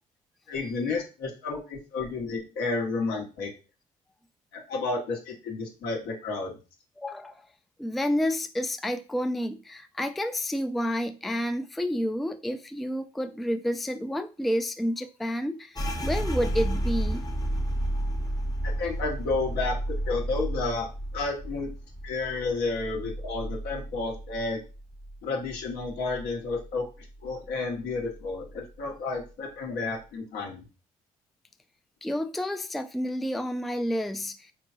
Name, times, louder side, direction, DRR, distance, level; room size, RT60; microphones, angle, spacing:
voice 1, 0.5-3.5 4.5-6.6 18.6-20.9 21.1-21.7 22.0-24.6 25.2-26.9 27.2-30.6, left 3 dB, 70° left, 0 dB, 1.3 m, -31 dB
voice 2, 7.0-7.5 7.8-17.2 32.0-34.5, equal, ahead, 8 dB, 0.4 m, -30 dB
sound 1, 15.7-25.2 25.4-26.7 27.0-27.5 27.9-28.5, right 1 dB, 20° left, 0.9 m, -32 dB
4.3 x 3.2 x 2.5 m, 0.32 s
hypercardioid pair, 50°, 18 cm